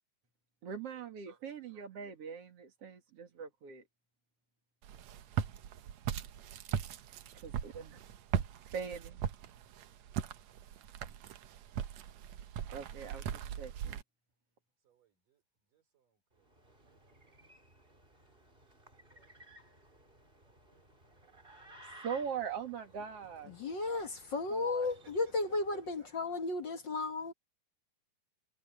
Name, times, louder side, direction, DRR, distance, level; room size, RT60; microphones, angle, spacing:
voice 1, 0.6-3.8 7.4-8.0 8.7-9.2 12.7-14.0 21.8-23.6 24.5-24.9, right 7 dB, 50° right, 2.9 m, -42 dB
voice 2, 1.4-1.8 14.8-15.4 15.7-18.0 18.2-18.4 18.6-21.5 24.8-25.0 26.0-26.4, right 3 dB, 80° right, 6.5 m, -71 dB
Walk footsteps, 4.8-14.0, right 9 dB, 65° right, 2.0 m, -39 dB
sound 1, 16.3-26.1, right 1 dB, 15° right, 3.5 m, -59 dB
voice 3, 23.5-27.3, left 3 dB, 45° left, 1.6 m, -34 dB
omnidirectional pair, 3.7 m